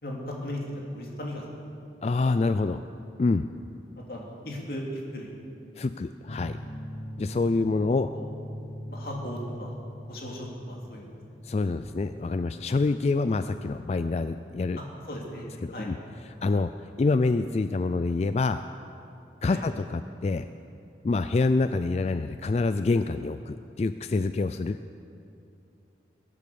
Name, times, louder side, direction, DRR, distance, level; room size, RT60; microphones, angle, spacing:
voice 1, 0.0-1.6 4.1-5.3 8.1-8.3 8.9-9.7 10.1-11.1 14.7-15.9 19.5-19.6, equal, 55° left, -2 dB, 2.8 m, -37 dB
voice 2, 2.0-2.8 3.2-3.5 5.8-6.6 7.2-8.1 11.4-14.8 15.6-16.0 16.4-16.7 17.0-18.6 19.4-20.5 21.0-24.8, left 3 dB, 35° left, 11 dB, 0.3 m, -26 dB
sound 1, 6.3-17.5, equal, 80° left, 1.5 m, -43 dB
22.5 x 8.4 x 7.0 m, 2.7 s
head